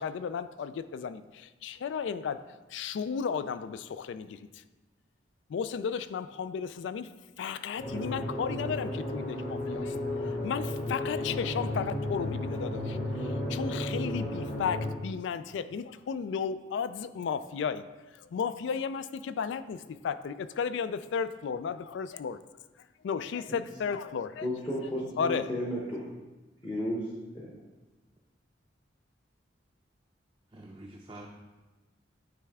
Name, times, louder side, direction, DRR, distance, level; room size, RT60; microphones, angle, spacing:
voice 1, 0.0-4.6 5.5-7.1 7.4-17.9 18.1-22.4 23.0-24.5 25.2-25.5, left 6 dB, 75° left, 13 dB, 0.3 m, -34 dB
sound 1, 7.8-14.9, left 1 dB, 45° left, 1.5 m, -33 dB
voice 2, 24.4-26.1 26.6-27.1 27.3-27.6, equal, 25° left, -4 dB, 0.9 m, -33 dB
voice 3, 30.5-31.3, right 1 dB, 25° right, -2 dB, 0.5 m, -46 dB
9.4 x 3.4 x 3.5 m, 1.2 s
head